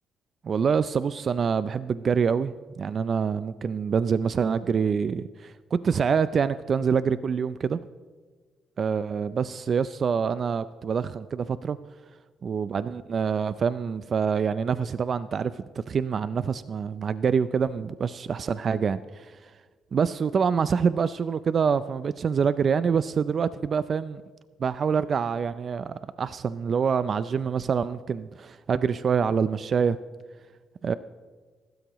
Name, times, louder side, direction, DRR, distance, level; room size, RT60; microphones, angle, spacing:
voice 1, 0.4-7.8 8.8-11.8 12.4-19.5 19.9-24.2 24.6-30.0 30.8-30.9, right 6 dB, 50° right, 14 dB, 0.4 m, -26 dB
24.5 x 13.0 x 3.0 m, 1.4 s
cardioid pair, 90°, 0 cm